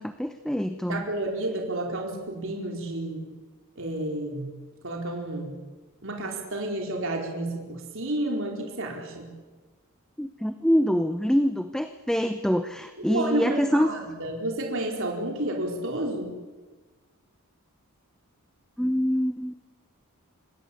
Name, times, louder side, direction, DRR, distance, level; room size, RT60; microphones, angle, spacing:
voice 1, 0.0-1.1 10.2-13.9 18.8-19.6, equal, 5° left, 8 dB, 0.8 m, -25 dB
voice 2, 0.9-3.3 3.8-4.5 4.8-5.6 6.0-9.3 13.1-16.4, right 1 dB, 60° right, 0 dB, 4.4 m, -30 dB
26.5 x 20.5 x 8.6 m, 1.3 s
head